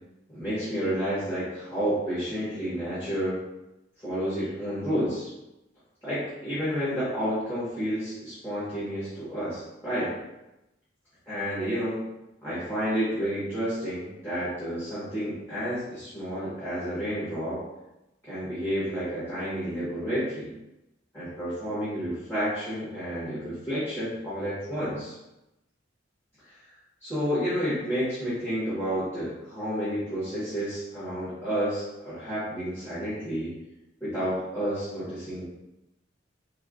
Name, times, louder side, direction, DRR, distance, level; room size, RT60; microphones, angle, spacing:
voice 1, 0.3-3.4 4.0-5.3 6.0-10.2 11.3-12.0 12.4-17.6 18.2-20.5 21.1-25.1 26.4-26.5 27.0-33.5 34.0-35.4, equal, 15° left, -14 dB, 1.4 m, -30 dB
4.3 x 2.3 x 2.5 m, 0.94 s
head